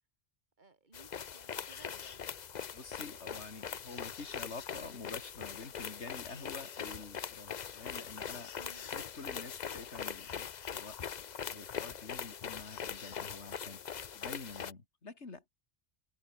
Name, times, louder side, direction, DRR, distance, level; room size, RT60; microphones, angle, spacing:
voice 1, 0.6-2.3 8.5-8.9, right 3 dB, 45° right, 2.9 m, -59 dB
sound 1, 0.9-14.7, left 8 dB, 45° left, 0.7 m, -42 dB
voice 2, 2.7-8.5 8.9-11.0 11.5-15.4, left 3 dB, 85° left, 2.9 m, -48 dB
omnidirectional pair, 1.2 m